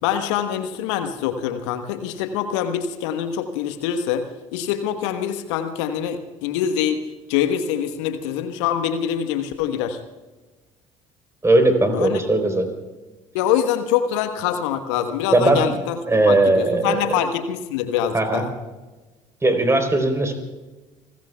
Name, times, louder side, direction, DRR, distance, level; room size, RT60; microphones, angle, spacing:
voice 1, 0.0-7.0 7.3-10.0 11.9-12.2 13.3-16.0 16.3-18.5, left 9 dB, 65° left, 8 dB, 1.3 m, -24 dB
voice 2, 11.4-12.7 15.3-15.8 16.1-17.2 18.1-18.4 19.4-20.3, right 2 dB, 15° right, 6 dB, 3.8 m, -18 dB
29.5 x 20.0 x 2.3 m, 1.2 s
figure-of-eight pair, 60°, 16 cm